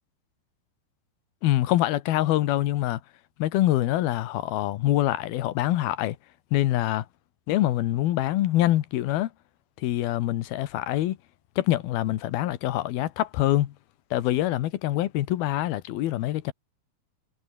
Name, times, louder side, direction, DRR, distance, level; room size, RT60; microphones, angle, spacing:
voice 1, 1.4-3.0 3.4-6.2 6.5-7.1 7.5-9.3 9.8-11.2 11.6-13.7 14.1-16.5, left 14 dB, 85° left, 3.1 m, -25 dB
omnidirectional pair, 4.2 m